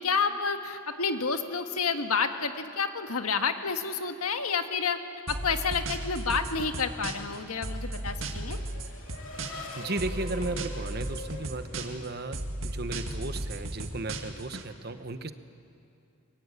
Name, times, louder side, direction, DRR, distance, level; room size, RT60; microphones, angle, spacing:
voice 1, 0.0-5.0 5.3-8.6, left 5 dB, 85° left, 7 dB, 1.6 m, -29 dB
sound 1, 5.3-7.4 7.6-9.7 10.0-12.1 12.3-14.6, right 1 dB, 60° right, 2.1 m, -35 dB
Race car auto racing / Accelerating revving vroom, 7.0-12.6, left 3 dB, 60° left, 3.3 m, -46 dB
voice 2, 9.7-15.3, right 2 dB, 45° right, 10 dB, 1.1 m, -35 dB
24.0 x 22.5 x 9.8 m, 2.6 s
head